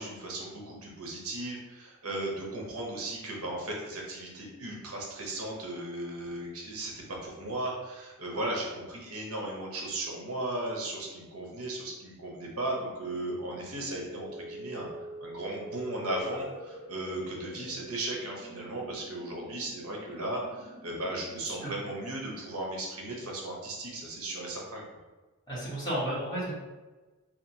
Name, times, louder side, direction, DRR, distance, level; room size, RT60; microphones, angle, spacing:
voice 1, 0.0-6.9 7.2-14.9 15.2-24.8, right 1 dB, 75° right, -2 dB, 0.7 m, -36 dB
sound 1, 12.4-22.4, right 1 dB, 20° right, 1.3 m, -47 dB
voice 2, 21.4-21.7 25.5-26.5, right 1 dB, 20° left, -10 dB, 1.2 m, -33 dB
2.8 x 2.4 x 2.6 m, 1.2 s
head